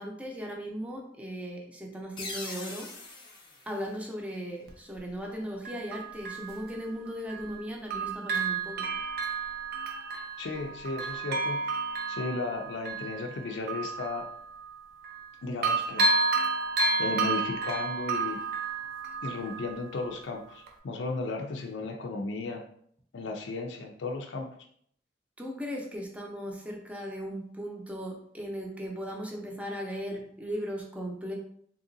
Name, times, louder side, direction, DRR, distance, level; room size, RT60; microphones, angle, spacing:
voice 1, 0.0-2.9 3.7-8.9 25.4-31.3, equal, 10° right, 0 dB, 0.6 m, -37 dB
sound 1, 2.2-4.7, left 2 dB, 25° left, 0.8 m, -43 dB
Bell, 4.7-4.8 5.6-7.6 7.9-15.3 15.6-20.2 20.7-20.8, right 3 dB, 60° right, 0.6 m, -31 dB
voice 2, 10.4-11.7 12.1-14.3 15.4-16.1 17.0-18.4 19.2-22.7 23.1-24.5, left 3 dB, 70° left, 2 dB, 0.4 m, -35 dB
3.7 x 2.9 x 2.6 m, 0.64 s
head